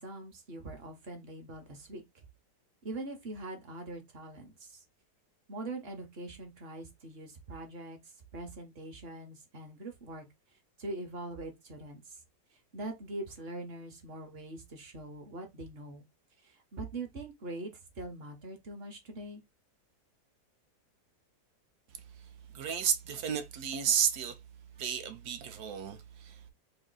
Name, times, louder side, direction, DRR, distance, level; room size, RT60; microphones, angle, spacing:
voice 1, 0.0-2.2 2.8-4.8 5.5-10.3 10.8-12.2 12.7-16.0 16.4-19.4, right 2 dB, 45° right, 0.9 m, -43 dB
voice 2, 22.5-24.4 24.8-26.5, right 8 dB, 75° right, 1.2 m, -32 dB
3.1 x 2.6 x 3.8 m
omnidirectional pair, 1.7 m